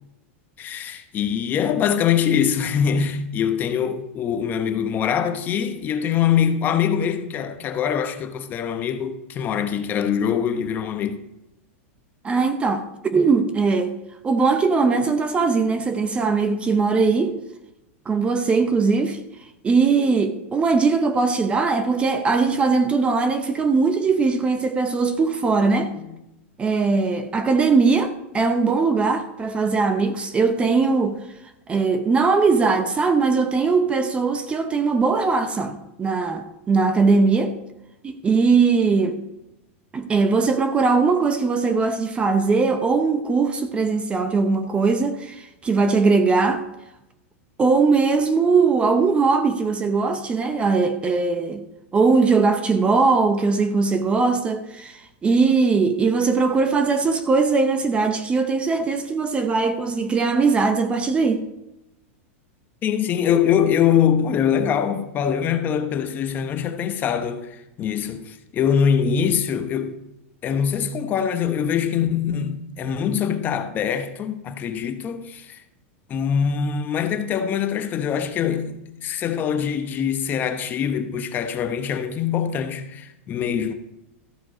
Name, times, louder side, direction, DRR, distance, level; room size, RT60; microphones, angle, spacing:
voice 1, 0.6-11.2 26.0-26.2 62.8-70.0 70.4-75.6 76.1-83.7, left 8 dB, 25° left, 0.8 m, -23 dB
voice 2, 12.2-13.9 14.2-17.4 18.1-19.2 19.6-25.9 26.6-31.2 31.7-37.6 38.0-39.2 39.9-46.6 47.6-51.6 51.9-61.4, right 4 dB, 15° right, 0.7 m, -20 dB
14.0 x 7.7 x 5.1 m
supercardioid pair, 150°, 7 cm